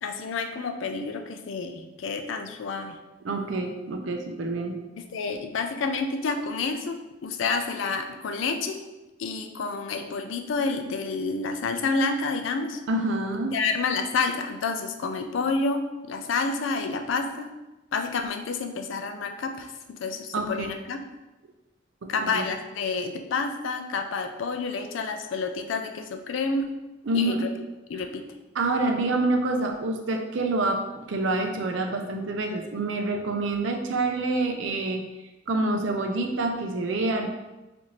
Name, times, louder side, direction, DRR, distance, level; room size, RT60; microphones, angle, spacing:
voice 1, 0.0-3.0 5.0-8.8 9.2-12.8 13.5-17.5 17.9-21.0 22.1-26.7 27.1-27.4 27.9-28.2, left 4 dB, 75° left, 6 dB, 0.4 m, -29 dB
voice 2, 3.2-4.8 12.9-13.6 20.3-20.7 22.0-22.4 27.1-27.4 28.5-30.8 31.1-35.0 35.5-37.3, right 2 dB, 70° right, 4 dB, 0.5 m, -27 dB
4.1 x 2.6 x 3.0 m, 1.0 s
head